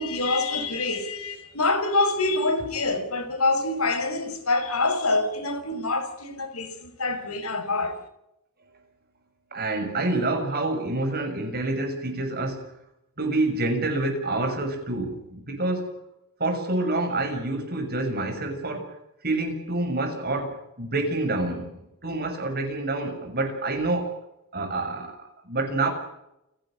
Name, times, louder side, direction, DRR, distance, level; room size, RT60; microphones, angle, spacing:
voice 1, 0.0-8.0, left 2 dB, 80° left, 5.4 m, -26 dB
voice 2, 9.5-12.7 13.2-16.0 16.4-18.9 19.2-24.2 24.5-25.9, right 2 dB, 45° right, 6.6 m, -27 dB
29.0 x 11.5 x 9.0 m
head